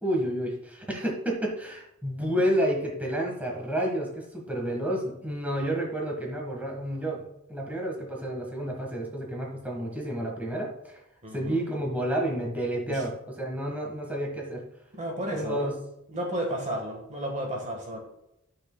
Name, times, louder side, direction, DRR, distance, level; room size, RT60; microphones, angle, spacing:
voice 1, 0.0-11.0 11.3-14.6 15.3-15.7, right 1 dB, 5° right, -1 dB, 1.4 m, -30 dB
voice 2, 11.2-11.6 12.9-13.0 14.9-15.7 16.1-18.0, right 1 dB, 35° right, 2 dB, 1.4 m, -33 dB
11.5 x 6.2 x 2.2 m, 0.82 s
head